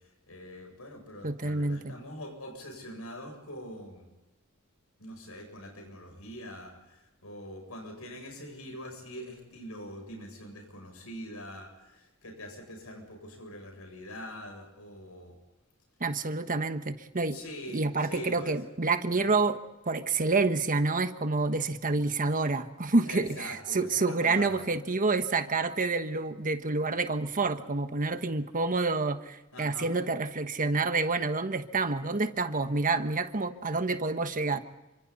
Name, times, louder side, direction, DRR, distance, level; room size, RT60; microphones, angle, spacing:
voice 1, 0.3-4.1 5.0-15.4 17.3-18.6 19.1-19.4 23.1-24.7 29.5-29.9, equal, 80° left, 3 dB, 7.7 m, -43 dB
voice 2, 1.2-1.9 16.0-17.4 17.7-19.6 19.9-34.6, right 3 dB, 40° right, 8 dB, 1.4 m, -28 dB
29.0 x 25.5 x 4.2 m, 1.0 s
head